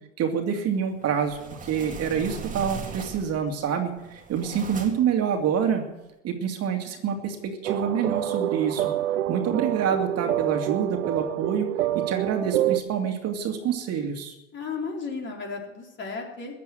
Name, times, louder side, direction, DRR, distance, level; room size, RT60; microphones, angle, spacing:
voice 1, 0.2-5.8 6.2-8.9 9.3-11.7 11.9-14.3, right 7 dB, 40° right, 4 dB, 2.4 m, -27 dB
sound 1, 1.0-3.5 4.0-5.2, right 5 dB, 20° right, 2.3 m, -39 dB
sound 2, 7.6-12.8, right 12 dB, 75° right, 0.9 m, -27 dB
voice 2, 14.5-16.5, left 4 dB, 30° left, 1 dB, 4.1 m, -34 dB
15.5 x 10.5 x 7.9 m, 1.0 s
hypercardioid pair, 100°, 39 cm